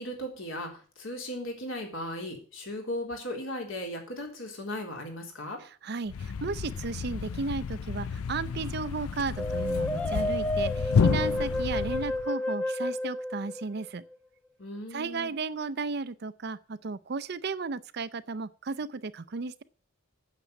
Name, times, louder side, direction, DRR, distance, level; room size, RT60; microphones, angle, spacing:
voice 1, 0.0-5.6 14.6-15.3, left 1 dB, 65° left, 2 dB, 3.7 m, -37 dB
voice 2, 5.8-14.0 14.9-19.6, right 4 dB, 50° right, 16 dB, 0.5 m, -34 dB
Thump thud, 6.1-12.3, left 6 dB, 80° left, 0.4 m, -30 dB
sound 1, 9.4-14.1, left 1 dB, 5° left, 0.4 m, -31 dB
9.1 x 7.5 x 8.1 m, 0.40 s
head